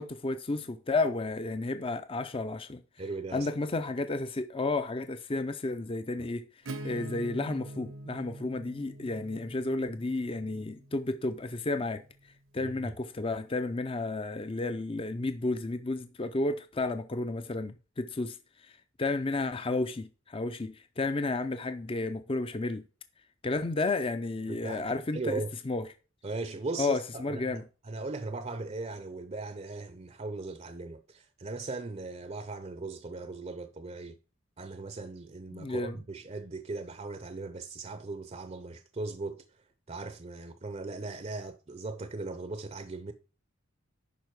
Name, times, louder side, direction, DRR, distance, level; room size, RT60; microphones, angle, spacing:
voice 1, 0.0-2.8 3.3-6.5 6.8-12.0 12.5-22.8 23.4-25.9 26.8-27.6 35.5-36.0, left 2 dB, 25° left, 0.5 m, -32 dB
voice 2, 3.0-3.5 12.6-12.9 24.5-24.8 25.1-25.5 26.2-34.2 34.6-39.4 39.9-43.1, right 3 dB, 30° right, 0.6 m, -38 dB
Acoustic guitar / Strum, 6.7-12.2, right 1 dB, 80° right, 1.2 m, -44 dB
9.2 x 5.6 x 4.7 m
head